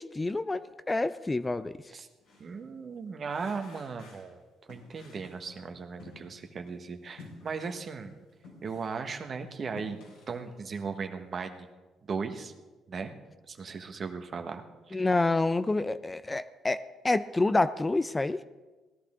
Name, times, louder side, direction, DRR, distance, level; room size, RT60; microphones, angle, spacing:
voice 1, 0.0-1.8 14.9-18.4, left 2 dB, 20° left, 12 dB, 0.5 m, -28 dB
sound 1, 2.2-2.5 3.2-4.3 4.7-6.7 7.2-9.1 9.5-10.8, left 3 dB, 85° left, 3.9 m, -52 dB
voice 2, 2.4-4.4 4.7-8.1 8.6-10.0 10.3-11.7 12.1-12.5 12.9-13.1 13.5-14.6 14.9-15.1, right 5 dB, 50° right, 6 dB, 1.4 m, -37 dB
17.5 x 11.5 x 3.7 m, 1.2 s
supercardioid pair, 65°, 0 cm